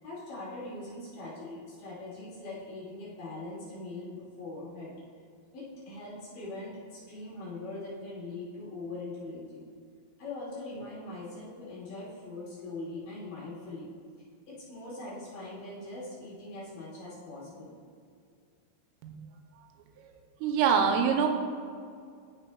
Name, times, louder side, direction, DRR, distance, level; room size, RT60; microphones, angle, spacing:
voice 1, 0.0-4.9 5.5-9.6 10.2-13.9 14.5-17.7, left 2 dB, 55° left, -9 dB, 3.2 m, -41 dB
voice 2, 20.4-21.3, right 7 dB, 85° right, 3 dB, 3.3 m, -24 dB
14.5 x 6.0 x 2.3 m, 2.3 s
omnidirectional pair, 5.7 m